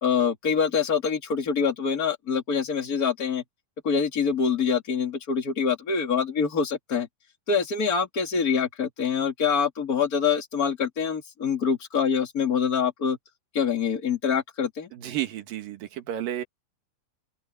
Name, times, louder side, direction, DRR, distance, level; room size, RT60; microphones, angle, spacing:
voice 1, 0.0-3.4 3.8-7.1 7.5-13.2 13.5-14.9, left 6 dB, 30° left, 2.6 m, -25 dB
voice 2, 14.9-16.4, right 12 dB, 85° right, 3.4 m, -32 dB
open air
omnidirectional pair, 3.9 m